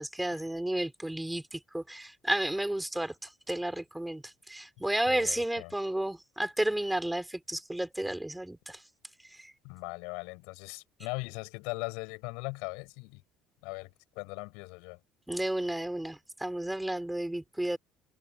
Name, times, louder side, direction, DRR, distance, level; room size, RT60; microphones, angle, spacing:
voice 1, 0.0-3.1 3.5-8.8 9.3-9.5 15.3-17.8, right 1 dB, 5° right, 3.6 m, -32 dB
voice 2, 5.1-5.7 9.6-13.2 13.6-15.0, left 31 dB, 65° left, 4.5 m, -39 dB
figure-of-eight pair, 60°, 0 cm